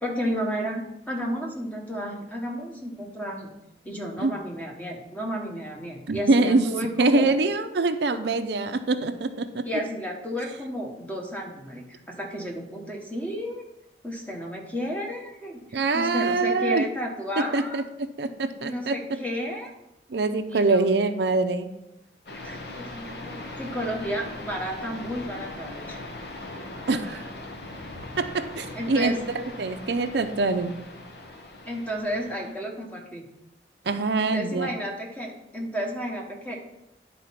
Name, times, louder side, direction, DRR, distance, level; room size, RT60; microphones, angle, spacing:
voice 1, 0.0-3.5 3.8-7.3 9.6-13.7 14.0-17.8 18.6-19.7 20.5-20.9 22.4-26.0 28.7-29.4 31.6-33.3 34.2-36.6, equal, 10° left, 0 dB, 1.2 m, -32 dB
voice 2, 6.1-9.7 15.7-16.8 17.4-19.0 20.1-21.7 26.9-27.3 28.2-30.7 33.9-34.7, right 3 dB, 70° right, 9 dB, 0.5 m, -24 dB
sound 1, 22.3-32.5, left 2 dB, 65° left, 1.2 m, -40 dB
10.5 x 4.2 x 5.8 m, 0.91 s
head